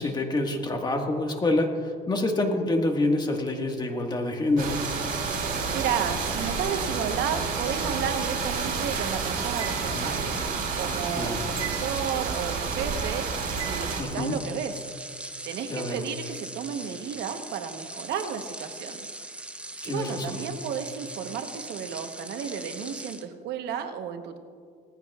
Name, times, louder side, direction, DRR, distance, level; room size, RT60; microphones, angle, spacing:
voice 1, 0.0-4.8 9.9-10.1 11.2-11.4 14.0-14.4 15.7-16.0 19.8-20.4, left 2 dB, 25° left, 3 dB, 1.6 m, -27 dB
sound 1, 4.6-14.0, right 5 dB, 60° right, 3.4 m, -30 dB
sound 2, 4.7-23.3, right 1 dB, 5° right, 0.8 m, -40 dB
voice 2, 5.7-14.9 15.4-19.0 19.8-24.4, right 8 dB, 80° right, 7 dB, 1.0 m, -33 dB
sound 3, 9.6-10.2 11.6-12.2 13.6-14.1, right 10 dB, 35° right, 1.2 m, -39 dB
19.0 x 15.0 x 2.4 m, 2.1 s
cardioid pair, 110°, 17 cm